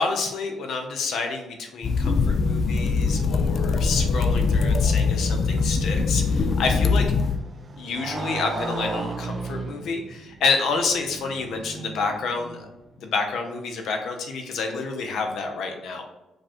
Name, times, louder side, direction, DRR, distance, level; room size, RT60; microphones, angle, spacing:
voice 1, 0.0-7.0 7.8-12.7 13.0-16.0, left 4 dB, 75° left, 3 dB, 0.7 m, -28 dB
sound 1, 1.8-7.4, left 4 dB, 50° left, 0.4 m, -22 dB
Motorcycle, 5.2-12.9, right 3 dB, 35° right, 0.5 m, -36 dB
5.0 x 2.3 x 4.3 m, 0.96 s
cardioid pair, 90°, 0 cm